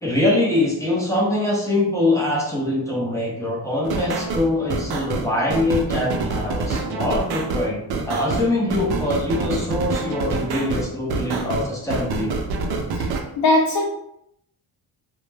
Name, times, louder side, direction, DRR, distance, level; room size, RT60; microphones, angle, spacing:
voice 1, 0.0-12.3, left 2 dB, 5° left, -4 dB, 0.5 m, -23 dB
sound 1, 3.8-13.2, right 3 dB, 60° right, 0.5 m, -26 dB
voice 2, 12.9-13.9, left 2 dB, 60° left, -2 dB, 0.6 m, -20 dB
2.1 x 2.1 x 3.1 m, 0.77 s
cardioid pair, 155°, 44 cm